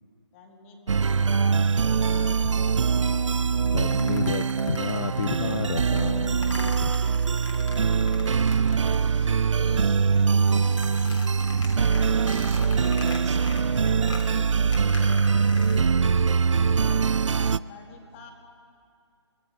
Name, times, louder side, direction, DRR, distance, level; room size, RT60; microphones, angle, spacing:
voice 1, 0.3-2.8 7.4-7.5 8.3-11.2 16.4-17.0 17.3-18.3, left 5 dB, 25° left, 2.2 m, -48 dB
sound 1, 0.9-17.6, right 5 dB, 80° right, 0.4 m, -23 dB
sound 2, 3.7-9.7 9.9-15.8, left 2 dB, 80° left, 3.4 m, -42 dB
voice 2, 3.7-6.9, left 7 dB, 50° left, 0.5 m, -31 dB
voice 3, 11.6-14.9, right 8 dB, 35° right, 0.7 m, -41 dB
24.0 x 20.0 x 5.5 m
figure-of-eight pair, 145°, 16 cm